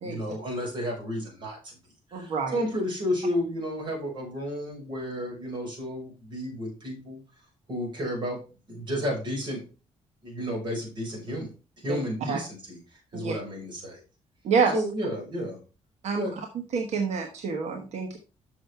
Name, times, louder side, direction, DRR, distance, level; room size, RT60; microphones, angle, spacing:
voice 1, 0.0-1.8 2.1-7.2 7.7-8.4 8.7-9.6 10.2-11.5 11.8-14.0 14.7-15.6 16.2-16.3, equal, 40° right, -1 dB, 4.6 m, -32 dB
voice 2, 2.1-2.6 11.9-12.0 12.3-12.4 13.1-13.3 14.4-14.7 16.0-16.3 16.7-18.2, right 5 dB, 70° right, 3 dB, 1.2 m, -27 dB
6.8 x 6.4 x 4.5 m, 0.33 s
cardioid pair, 150°, 12 cm